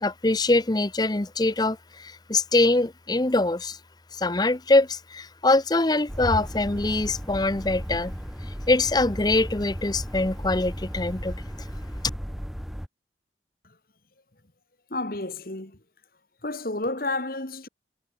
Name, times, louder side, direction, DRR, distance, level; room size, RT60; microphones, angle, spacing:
voice 1, 0.0-3.8 4.2-8.1 8.7-11.3, left 2 dB, 25° left, 0.7 m, -23 dB
sound 1, 6.1-12.9, equal, ahead, 1.3 m, -35 dB
voice 2, 14.9-15.8 16.4-17.7, left 2 dB, 55° left, 2.4 m, -31 dB
head